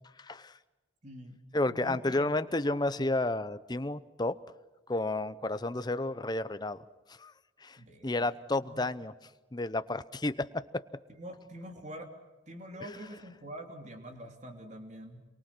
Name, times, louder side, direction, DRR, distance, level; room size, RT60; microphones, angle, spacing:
voice 1, 0.2-0.5 1.5-4.4 4.9-6.8 7.2-7.3 7.6-7.8 8.0-9.1 9.5-10.8, left 2 dB, 20° left, 13 dB, 0.7 m, -31 dB
voice 2, 1.0-1.4 1.7-3.0 7.8-8.2 8.5-8.9 11.1-12.1 12.5-15.2, right 1 dB, 40° right, 4 dB, 3.2 m, -46 dB
28.0 x 23.0 x 6.1 m, 1.2 s
head